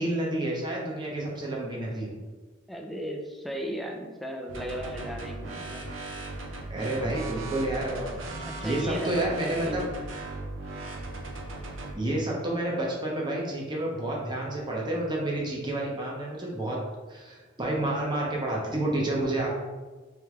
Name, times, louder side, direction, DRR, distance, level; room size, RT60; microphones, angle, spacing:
voice 1, 0.0-2.1 6.7-8.2 8.6-9.8 11.9-16.8 17.1-19.5, right 1 dB, 20° right, -3 dB, 0.8 m, -29 dB
voice 2, 2.7-5.9 7.0-7.2 8.4-9.9, equal, ahead, 1 dB, 0.4 m, -36 dB
sound 1, 4.5-11.9, right 2 dB, 75° right, 0.7 m, -37 dB
3.5 x 3.3 x 3.2 m, 1.3 s
head